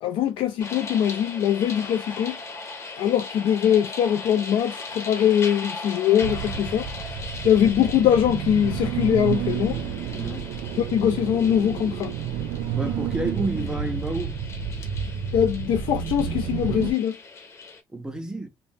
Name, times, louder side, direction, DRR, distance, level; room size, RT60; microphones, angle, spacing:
voice 1, 0.0-2.4 3.0-6.9 7.4-9.8 10.8-12.1 15.3-17.2, left 10 dB, 75° left, 0.4 m, -22 dB
sound 1, 0.6-17.8, left 3 dB, 35° left, 0.8 m, -39 dB
sound 2, 6.2-16.9, right 8 dB, 80° right, 0.4 m, -30 dB
voice 2, 10.1-10.5 12.8-14.4 17.9-18.5, right 1 dB, 10° right, 0.4 m, -30 dB
2.7 x 2.0 x 3.4 m
cardioid pair, 165°, 9 cm